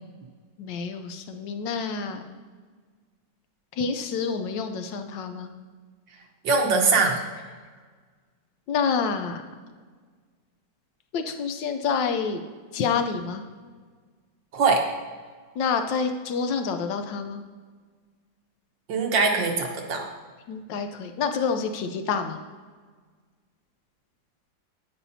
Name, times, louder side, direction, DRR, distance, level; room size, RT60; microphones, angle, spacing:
voice 1, 0.6-2.2 3.8-5.5 8.7-9.4 11.1-12.4 12.7-13.4 15.6-17.4 20.5-22.4, left 5 dB, 85° left, 7 dB, 1.4 m, -28 dB
voice 2, 6.4-7.2 14.5-14.8 18.9-20.1, right 4 dB, 85° right, 2 dB, 1.8 m, -22 dB
10.0 x 8.7 x 2.8 m, 1.5 s
omnidirectional pair, 1.9 m